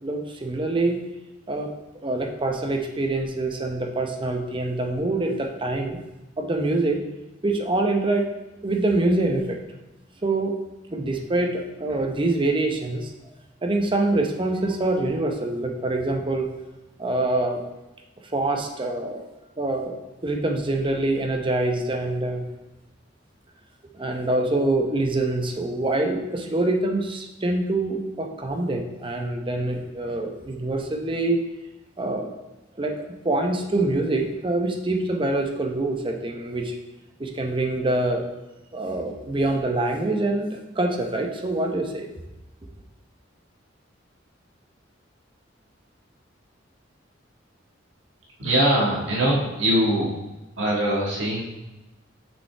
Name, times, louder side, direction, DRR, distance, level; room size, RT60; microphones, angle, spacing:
voice 1, 0.0-1.0 1.5-1.7 2.0-6.0 6.4-7.0 7.4-8.3 8.6-9.6 10.2-10.6 10.9-13.1 13.6-16.5 17.0-17.6 18.3-19.2 19.6-20.0 20.2-22.5 23.9-31.4 32.0-32.3 32.8-36.8 37.2-38.3 38.7-42.1, right 2 dB, 25° right, 3 dB, 0.8 m, -25 dB
voice 2, 48.4-50.1 50.6-51.4, right 1 dB, 85° right, -4 dB, 1.7 m, -22 dB
6.2 x 5.4 x 3.4 m, 1.0 s
head